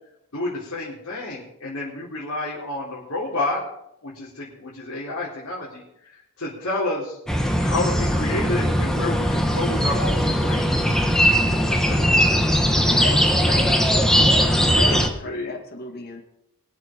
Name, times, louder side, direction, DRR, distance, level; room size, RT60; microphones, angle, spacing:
voice 1, 0.3-3.6 4.0-7.2 7.5-10.8 11.5-11.8 12.9-13.1 14.7-15.5, left 2 dB, 70° left, -7 dB, 4.1 m, -30 dB
sound 1, 7.3-15.1, equal, 5° left, 1.3 m, -20 dB
voice 2, 12.9-14.1 14.8-16.2, left 2 dB, 45° left, 3 dB, 2.2 m, -33 dB
23.0 x 7.7 x 5.3 m, 0.80 s
head